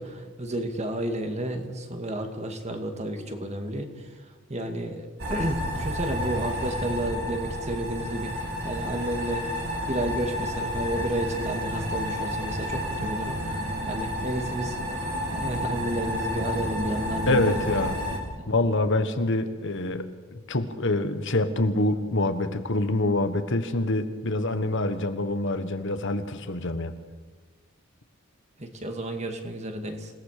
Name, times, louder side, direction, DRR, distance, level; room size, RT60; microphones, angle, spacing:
voice 1, 0.0-9.5 9.9-14.8 15.3-17.6 18.3-18.5 28.6-30.1, right 1 dB, 30° right, 5 dB, 2.3 m, -31 dB
sound 1, 5.2-18.2, equal, 50° right, 4.3 m, -31 dB
voice 2, 17.3-18.0 18.5-26.9, left 2 dB, 55° left, 9 dB, 1.4 m, -26 dB
27.5 x 18.0 x 6.8 m, 1.4 s
head